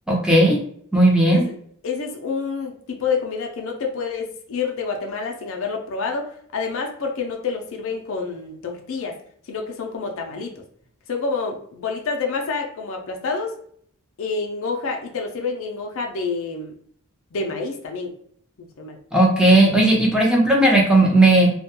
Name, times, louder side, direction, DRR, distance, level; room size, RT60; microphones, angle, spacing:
voice 1, 0.1-0.6 0.9-1.4 19.1-21.5, right 1 dB, 5° right, -3 dB, 0.5 m, -15 dB
voice 2, 1.8-9.2 9.5-10.5 11.1-13.6 14.2-16.7 17.3-18.1 18.8-19.0, left 4 dB, 60° left, 2 dB, 0.4 m, -28 dB
2.3 x 2.1 x 2.8 m, 0.62 s
head